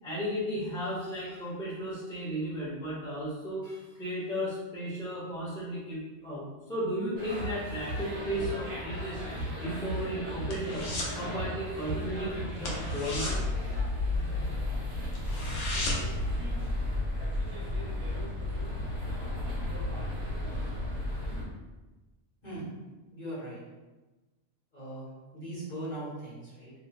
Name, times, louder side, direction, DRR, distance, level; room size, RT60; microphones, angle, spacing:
voice 1, 0.0-9.2 9.6-13.4, equal, 5° left, -8 dB, 0.6 m, -35 dB
sound 1, 7.2-21.4, left 1 dB, 80° right, 1.4 m, -34 dB
sound 2, 9.6-11.2 11.5-11.8 12.1-12.2 12.6-14.4 14.8-14.9 15.1-16.2 16.6-16.7, left 2 dB, 70° left, 1.0 m, -36 dB
voice 2, 22.4-22.7 23.1-23.6 24.7-26.7, right 1 dB, 40° left, -9 dB, 1.1 m, -39 dB
3.0 x 2.7 x 2.3 m, 1.2 s
omnidirectional pair, 1.4 m